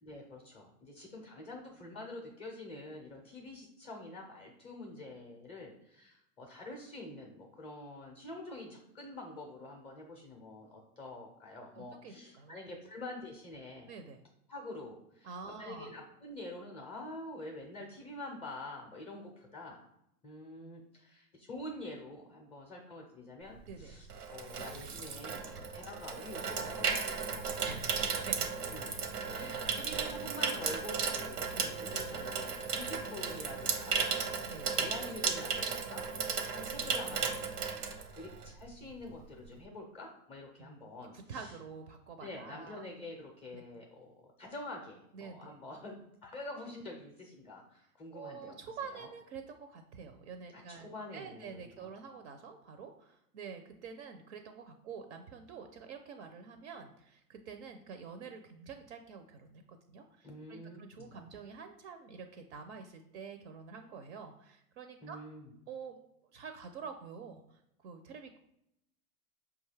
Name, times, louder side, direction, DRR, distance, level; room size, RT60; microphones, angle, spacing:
voice 1, 0.0-13.9 14.5-15.3 15.6-19.8 20.2-27.5 27.9-28.0 28.7-29.0 29.3-37.6 38.1-41.5 42.2-45.9 46.2-48.6 48.9-49.1 50.5-51.9 60.2-61.3 65.0-65.5, left 2 dB, 15° left, 0 dB, 0.4 m, -47 dB
voice 2, 11.7-12.6 13.9-14.2 15.2-15.9 23.7-24.0 27.6-28.6 29.5-29.6 31.5-31.8 34.4-34.8 40.6-40.8 41.1-42.9 43.5-43.6 45.1-45.5 48.1-65.2 65.7-66.0 66.3-68.4, right 5 dB, 50° right, 7 dB, 0.5 m, -47 dB
Water tap faucet / Sink (filling or washing), 23.6-38.6 38.9-39.2, right 5 dB, 85° right, 0.8 m, -35 dB
5.1 x 2.3 x 3.2 m, 0.78 s
hypercardioid pair, 125°, 46 cm